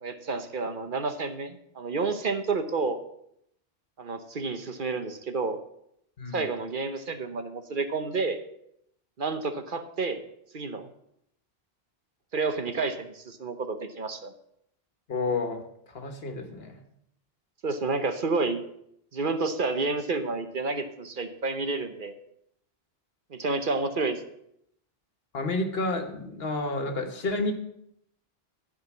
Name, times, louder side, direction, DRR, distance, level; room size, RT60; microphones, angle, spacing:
voice 1, 0.0-3.0 4.0-5.6 6.3-8.4 9.2-10.2 10.5-10.9 12.3-14.3 17.6-18.6 19.1-22.1 23.3-24.2, right 3 dB, 55° right, 8 dB, 1.1 m, -30 dB
voice 2, 15.1-15.6 15.9-16.8 25.3-27.5, left 2 dB, 70° left, 6 dB, 1.6 m, -30 dB
12.5 x 5.1 x 7.3 m, 0.74 s
omnidirectional pair, 1.1 m